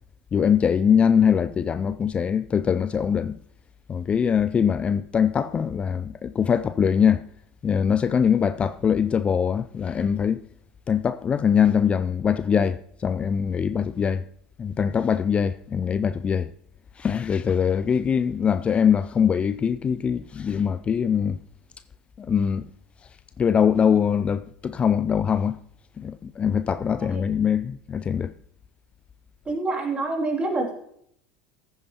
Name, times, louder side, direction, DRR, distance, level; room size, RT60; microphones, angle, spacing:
voice 1, 0.3-3.4 3.9-7.2 7.6-10.4 10.9-14.2 14.6-16.5 17.0-21.4 22.2-22.7 23.4-25.6 26.0-28.3, left 7 dB, 25° left, 0.3 m, -22 dB
voice 2, 29.4-30.7, right 2 dB, 25° right, 2.7 m, -26 dB
14.5 x 9.3 x 2.8 m
hypercardioid pair, 80°, 4 cm